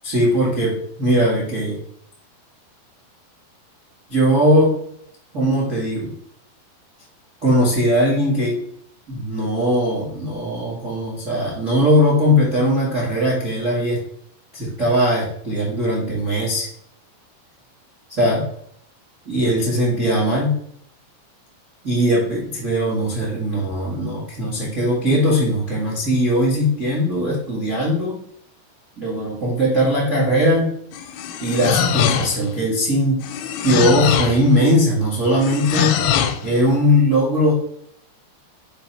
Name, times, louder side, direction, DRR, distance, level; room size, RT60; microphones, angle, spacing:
voice 1, 0.0-1.8 4.1-4.8 5.3-6.1 7.4-8.6 9.1-14.0 14.5-16.7 18.2-18.4 19.2-20.5 21.8-28.2 29.0-30.7 31.4-33.2 33.6-36.0 36.4-37.5, equal, 65° right, -6 dB, 0.7 m, -19 dB
sound 1, 30.9-32.5 33.2-34.4 35.4-36.5, left 9 dB, 80° left, 2.3 m, -22 dB
6.8 x 3.0 x 5.4 m, 0.69 s
omnidirectional pair, 5.0 m